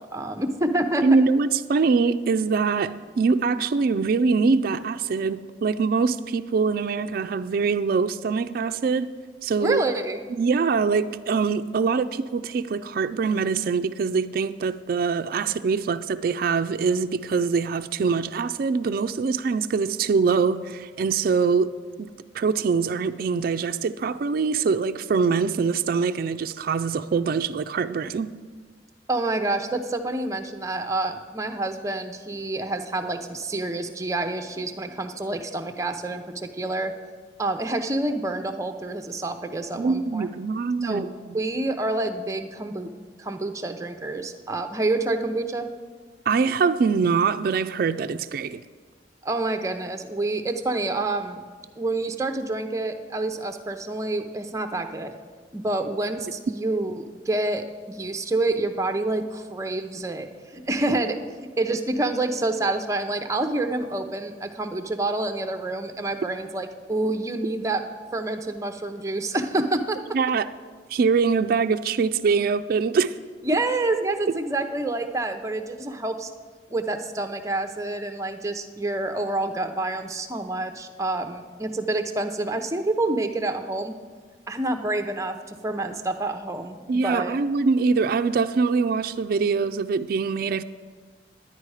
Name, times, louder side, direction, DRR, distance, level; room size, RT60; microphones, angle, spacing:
voice 1, 0.0-1.0 9.6-10.2 29.1-36.9 37.4-40.3 40.8-41.1 41.3-42.9 43.2-45.7 49.2-51.4 51.8-55.1 55.5-60.3 60.5-61.2 61.6-67.8 68.1-70.0 73.4-76.3 76.7-83.9 84.5-87.4, right 2 dB, 20° right, 0.6 m, -27 dB
voice 2, 1.0-9.1 9.4-9.8 10.3-21.7 22.0-28.3 39.7-41.1 46.3-48.6 70.1-70.5 70.9-73.2 86.9-90.6, right 5 dB, 55° right, 0.3 m, -23 dB
11.0 x 9.8 x 4.8 m
head